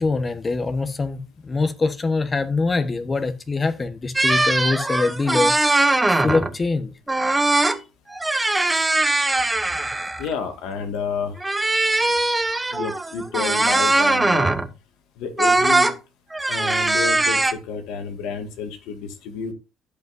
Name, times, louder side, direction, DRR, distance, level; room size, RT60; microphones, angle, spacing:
voice 1, 0.0-5.5 6.1-6.9, left 3 dB, 30° left, 1.2 m, -23 dB
sound 1, 4.2-6.6 7.1-7.8 8.1-10.3 11.4-14.7 15.4-16.0 16.3-17.5, right 2 dB, 15° right, 1.0 m, -20 dB
voice 2, 10.2-11.4 12.7-14.5 15.2-15.9 16.5-19.5, left 5 dB, 80° left, 1.9 m, -30 dB
15.5 x 5.4 x 2.7 m
supercardioid pair, 70°, 0 cm